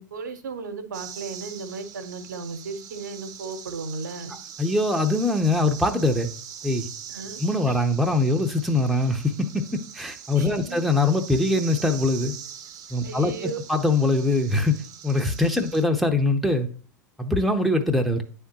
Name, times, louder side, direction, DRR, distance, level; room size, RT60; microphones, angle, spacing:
voice 1, 0.0-4.4 7.1-7.8 10.3-10.8 13.0-13.6, right 4 dB, 70° right, 0.9 m, -36 dB
sound 1, 0.9-15.8, right 8 dB, 40° right, 0.7 m, -42 dB
voice 2, 4.6-6.3 6.6-6.9 7.4-12.3 12.9-14.8 15.0-16.7 17.2-18.2, left 2 dB, ahead, 0.7 m, -23 dB
9.5 x 3.5 x 2.9 m
figure-of-eight pair, 90°, 10 cm